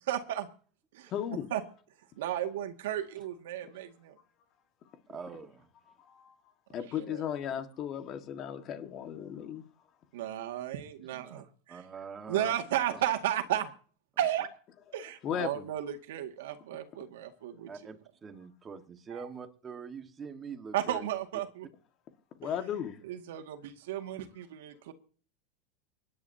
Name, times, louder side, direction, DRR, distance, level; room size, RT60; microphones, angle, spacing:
voice 1, 0.1-0.5 0.9-1.1 1.5-1.6 2.2-4.2 6.7-7.2 10.1-11.8 12.3-13.7 14.2-14.5 14.9-17.7 19.1-19.2 20.7-21.7 23.0-24.9, right 11 dB, 85° right, 2.0 m, -34 dB
voice 2, 1.1-1.5 6.0-6.4 6.7-9.6 15.2-15.6 17.5-17.7 22.4-23.0, left 9 dB, 35° left, 1.7 m, -36 dB
voice 3, 5.1-5.7 11.1-11.4 11.7-12.5 12.9-13.0 17.7-21.1, right 6 dB, 20° right, 1.5 m, -44 dB
24.5 x 11.0 x 2.8 m
supercardioid pair, 155°, 0 cm